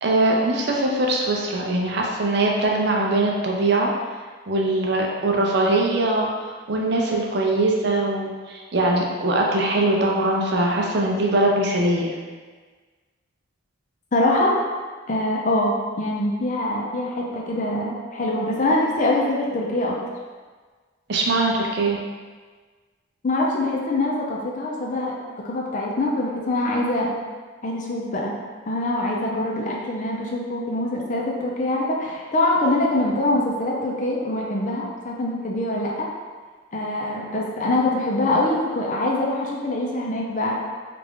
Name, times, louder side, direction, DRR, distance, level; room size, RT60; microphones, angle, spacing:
voice 1, 0.0-3.9 4.5-12.1 21.1-22.0, right 2 dB, 55° right, -1 dB, 0.5 m, -22 dB
voice 2, 14.1-14.5 15.1-20.0 23.2-25.1 25.4-27.1 27.6-28.4 28.7-36.1 36.7-40.6, left 1 dB, 40° left, -2 dB, 0.5 m, -24 dB
3.3 x 2.4 x 3.6 m, 1.5 s
head